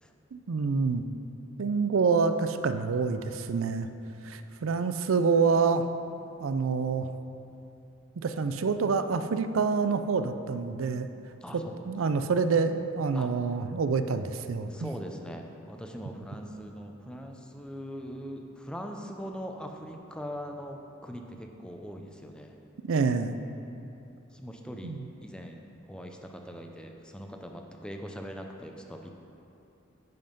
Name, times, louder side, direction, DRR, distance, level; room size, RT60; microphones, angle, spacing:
voice 1, 0.3-1.0 1.6-3.9 4.2-5.9 6.4-7.1 8.2-11.1 11.5-14.9 22.8-23.3 24.8-25.0, right 5 dB, 85° right, 10 dB, 0.5 m, -27 dB
voice 2, 11.4-11.9 13.1-13.3 14.7-22.6 24.3-24.9 25.2-29.1, equal, 5° left, 3 dB, 0.6 m, -41 dB
9.2 x 5.6 x 5.3 m, 2.8 s
head